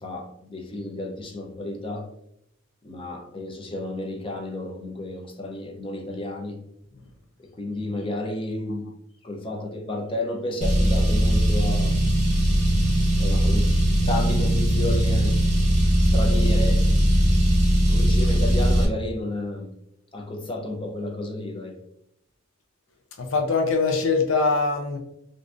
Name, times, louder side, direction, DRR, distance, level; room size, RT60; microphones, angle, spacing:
voice 1, 0.0-2.1 2.8-6.6 7.6-8.8 9.2-11.9 13.2-13.7 14.0-15.4 16.1-16.8 17.9-19.7 20.1-21.8, left 1 dB, 25° left, 1 dB, 0.5 m, -31 dB
Car, 10.6-18.9, equal, 35° right, 0.8 m, -20 dB
voice 2, 23.2-25.0, left 4 dB, 75° left, 3 dB, 0.5 m, -22 dB
3.5 x 2.6 x 2.4 m, 0.76 s
head